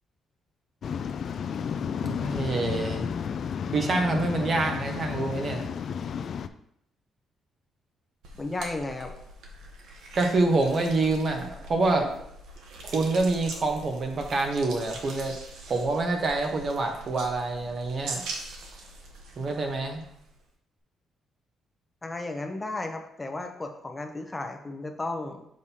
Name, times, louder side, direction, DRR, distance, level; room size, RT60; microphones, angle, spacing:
Waves surf, 0.8-6.5, left 7 dB, 55° left, 0.3 m, -32 dB
voice 1, 2.0-3.1 3.7-5.7 10.1-12.1 12.8-15.3 15.7-18.2 19.4-20.0, right 3 dB, 45° right, 3 dB, 1.1 m, -26 dB
sound 1, 8.2-20.4, right 2 dB, 85° right, 1.0 m, -42 dB
voice 2, 8.4-9.1 22.0-25.5, left 2 dB, 20° left, 5 dB, 0.7 m, -34 dB
6.3 x 5.4 x 2.9 m, 0.74 s
cardioid pair, 90°, 0 cm